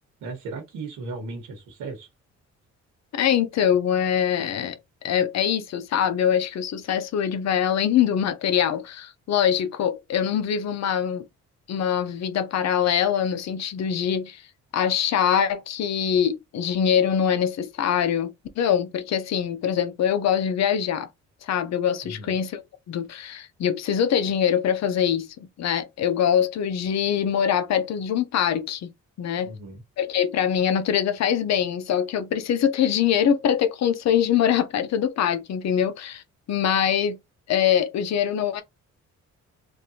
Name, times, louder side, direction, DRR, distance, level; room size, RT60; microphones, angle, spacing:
voice 1, 0.2-2.1 22.0-22.3 29.4-29.8, right 3 dB, 85° right, 1.1 m, -36 dB
voice 2, 3.1-11.3 11.7-14.4 14.7-21.1 21.4-28.9 29.2-29.5 30.0-36.2 36.5-37.2 37.5-38.6, left 8 dB, 60° left, 0.6 m, -23 dB
3.2 x 2.5 x 2.7 m
cardioid pair, 90°, 30 cm